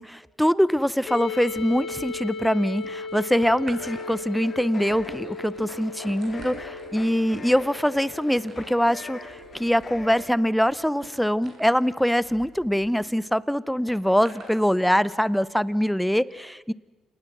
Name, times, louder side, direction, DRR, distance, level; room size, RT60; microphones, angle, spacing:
voice 1, 0.0-16.7, equal, ahead, 18 dB, 0.7 m, -23 dB
sound 1, 1.1-12.8, left 4 dB, 75° left, 4.4 m, -38 dB
sound 2, 1.4-2.4 2.8-13.1 13.9-14.6 15.3-15.4, right 4 dB, 55° right, 5.9 m, -47 dB
sound 3, 3.8-10.3, left 3 dB, 40° left, 4.0 m, -43 dB
28.0 x 19.0 x 6.1 m, 1.3 s
cardioid pair, 90°, 0 cm